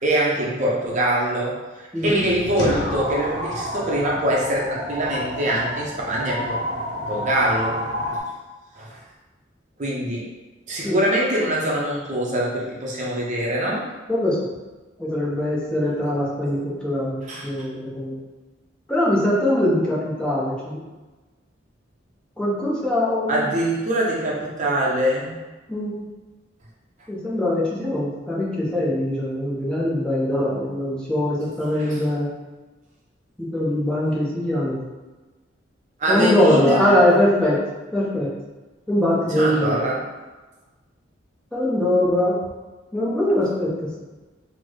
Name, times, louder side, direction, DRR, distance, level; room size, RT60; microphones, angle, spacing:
voice 1, 0.0-1.6 2.0-6.6 7.1-7.8 8.8-9.0 9.8-10.2 10.7-13.8 17.3-17.7 23.3-25.4 31.8-32.0 36.0-36.9 39.3-40.0, right 1 dB, 40° right, -3 dB, 0.5 m, -23 dB
voice 2, 1.9-2.3 10.8-11.0 14.1-14.5 15.0-18.2 18.9-20.8 22.4-23.5 25.7-26.0 27.1-32.3 33.4-34.8 36.1-37.6 37.9-38.3 38.9-39.8 41.5-42.4 42.9-44.0, left 1 dB, 5° left, -7 dB, 0.6 m, -22 dB
sound 1, 2.0-8.2, equal, 65° left, 0.8 m, -29 dB
3.8 x 2.0 x 3.1 m, 1.2 s
head